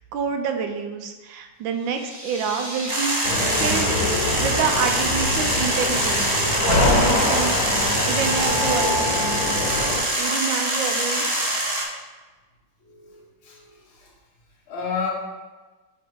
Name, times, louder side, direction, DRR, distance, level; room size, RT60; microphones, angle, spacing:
voice 1, 0.1-7.8 8.1-8.9 10.2-11.3, right 6 dB, 75° right, 5 dB, 1.3 m, -28 dB
sound 1, 1.7-2.9, equal, 15° right, 0.7 m, -37 dB
sound 2, 2.9-11.8, right 1 dB, 35° right, 1.0 m, -24 dB
sound 3, 3.2-10.0, left 2 dB, 50° left, 1.5 m, -24 dB
voice 2, 12.8-14.1 14.7-15.1, left 6 dB, 85° left, -2 dB, 2.1 m, -32 dB
7.3 x 3.4 x 4.6 m, 1.2 s
omnidirectional pair, 2.2 m